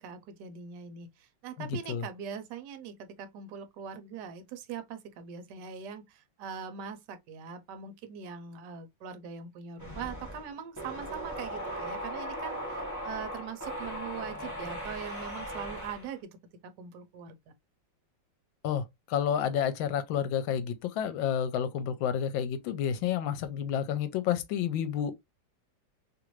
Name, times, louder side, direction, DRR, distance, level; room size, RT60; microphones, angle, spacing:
voice 1, 0.0-16.4 16.6-17.5, right 7 dB, 70° right, 1.2 m, -42 dB
sound 1, 9.8-16.1, equal, 25° left, 0.3 m, -38 dB
voice 2, 19.1-25.1, left 9 dB, 85° left, 1.3 m, -30 dB
3.1 x 2.5 x 2.9 m
omnidirectional pair, 2.1 m